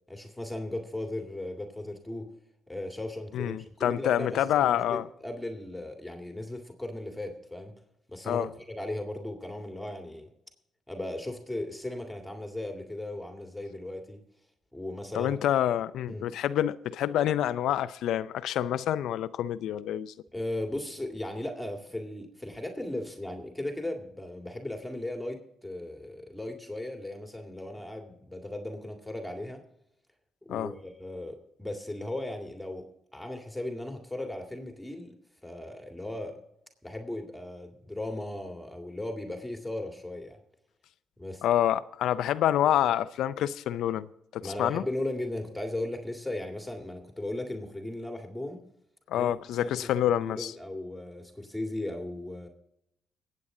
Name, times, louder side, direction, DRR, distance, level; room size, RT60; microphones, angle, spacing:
voice 1, 0.1-2.3 2.7-7.7 8.1-10.3 10.9-14.2 14.7-15.4 16.1-16.3 20.3-29.6 30.5-32.9 33.1-35.1 35.4-36.4 36.8-40.4 41.2-41.4 44.4-48.6 49.1-52.5, left 1 dB, 5° left, 2.1 m, -37 dB
voice 2, 3.3-5.0 8.3-8.5 15.1-20.1 30.5-30.7 41.4-44.1 44.3-44.8 49.1-50.5, left 11 dB, 80° left, 0.5 m, -27 dB
21.5 x 8.5 x 3.8 m
cardioid pair, 90°, 0 cm